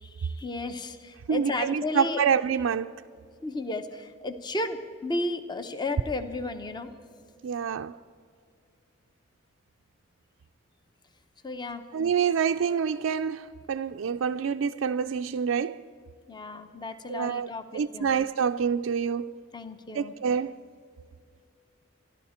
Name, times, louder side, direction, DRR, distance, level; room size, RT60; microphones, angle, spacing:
voice 1, 0.0-2.2 3.4-6.9 11.4-11.8 16.3-18.1 19.5-20.1, left 2 dB, 20° left, 0.7 m, -33 dB
voice 2, 1.3-2.9 7.4-8.0 11.9-15.8 17.1-17.5 17.7-19.3 19.9-20.6, right 7 dB, 85° right, 0.4 m, -27 dB
26.5 x 12.0 x 4.3 m
head